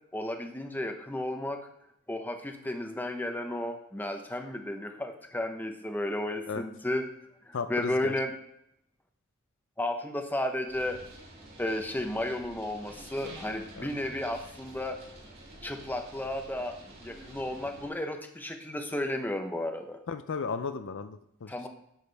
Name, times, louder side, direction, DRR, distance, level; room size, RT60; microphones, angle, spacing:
voice 1, 0.1-1.7 2.1-7.1 7.5-8.3 9.8-11.0 11.6-15.0 15.6-16.8 17.0-20.0 21.5-21.7, left 1 dB, 10° left, 5 dB, 0.9 m, -33 dB
voice 2, 7.5-8.1 13.8-13.9 20.1-21.7, left 5 dB, 60° left, 10 dB, 0.5 m, -35 dB
sound 1, 10.7-17.9, right 1 dB, 50° right, 3.8 m, -49 dB
10.5 x 7.3 x 3.4 m, 0.76 s
head